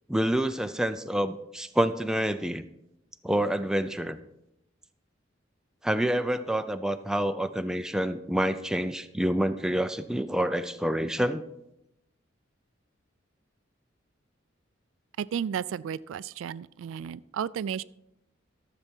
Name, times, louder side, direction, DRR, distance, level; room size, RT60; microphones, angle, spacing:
voice 1, 0.1-2.6 3.2-4.2 5.8-11.4, right 1 dB, 5° right, 9 dB, 0.4 m, -27 dB
voice 2, 15.2-17.8, right 8 dB, 80° right, 19 dB, 0.3 m, -33 dB
13.0 x 7.0 x 4.5 m, 0.85 s
head